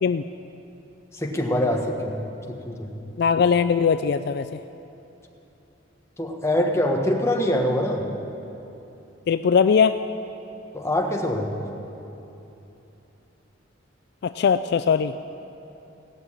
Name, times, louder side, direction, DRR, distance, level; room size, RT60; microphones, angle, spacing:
voice 1, 1.1-2.2 2.5-2.9 6.2-8.1 10.7-11.5, left 1 dB, 15° left, 1 dB, 1.3 m, -24 dB
voice 2, 3.2-4.6 9.3-10.0 14.2-15.1, left 6 dB, 55° left, 11 dB, 0.3 m, -20 dB
17.5 x 6.6 x 9.9 m, 2.9 s
head